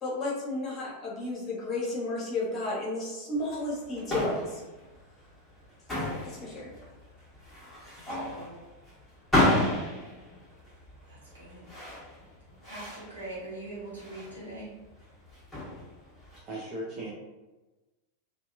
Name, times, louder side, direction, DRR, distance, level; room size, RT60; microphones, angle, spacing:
voice 1, 0.0-4.6 6.2-6.7, left 2 dB, 25° left, -5 dB, 1.1 m, -33 dB
sound 1, 3.4-16.4, left 1 dB, 5° left, 1.2 m, -32 dB
voice 2, 8.0-8.5 11.1-11.7 12.6-14.7, right 2 dB, 75° right, -7 dB, 1.0 m, -42 dB
voice 3, 16.4-17.1, right 1 dB, 30° right, -6 dB, 0.5 m, -37 dB
2.7 x 2.3 x 2.5 m, 1.1 s
figure-of-eight pair, 90°, 0 cm